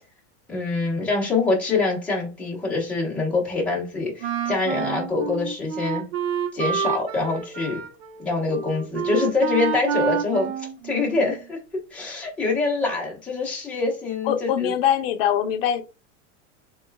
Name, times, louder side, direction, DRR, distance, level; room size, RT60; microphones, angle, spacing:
voice 1, 0.5-6.1 6.5-7.8 8.2-11.6 11.9-14.7, left 3 dB, 5° left, 0.9 m, -25 dB
Wind instrument woodwind instrument, 4.2-11.4, right 7 dB, 55° right, 0.8 m, -28 dB
voice 2, 14.3-15.8, left 10 dB, 50° left, 0.6 m, -22 dB
6.7 x 2.3 x 2.2 m
supercardioid pair, 175°, 37 cm